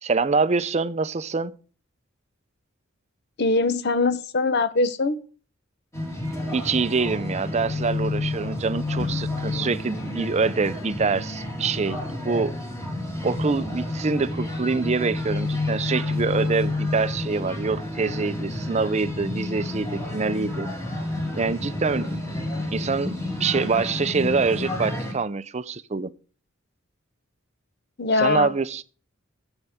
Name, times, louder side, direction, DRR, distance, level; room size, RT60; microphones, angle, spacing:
voice 1, 0.0-1.5 6.5-12.5 13.2-20.7 21.3-22.2 22.7-26.1 28.2-28.8, right 4 dB, 35° right, 0.5 m, -25 dB
voice 2, 3.4-5.2 28.0-28.5, left 3 dB, 55° left, 0.8 m, -22 dB
sound 1, 5.9-25.1, left 2 dB, 15° left, 2.9 m, -30 dB
13.0 x 8.0 x 3.6 m
head